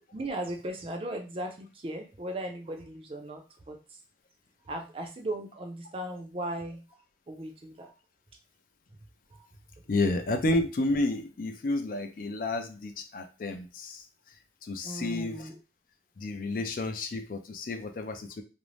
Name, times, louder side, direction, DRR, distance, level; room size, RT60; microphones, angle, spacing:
voice 1, 0.1-3.4 3.7-3.8 4.7-6.8 7.3-7.9 9.3-9.5 14.8-15.6 16.5-16.6, right 1 dB, 30° right, 4 dB, 0.4 m, -37 dB
voice 2, 9.9-14.0 14.6-15.5 16.2-18.4, left 2 dB, 50° left, 6 dB, 0.4 m, -31 dB
2.5 x 2.0 x 3.1 m, 0.32 s
head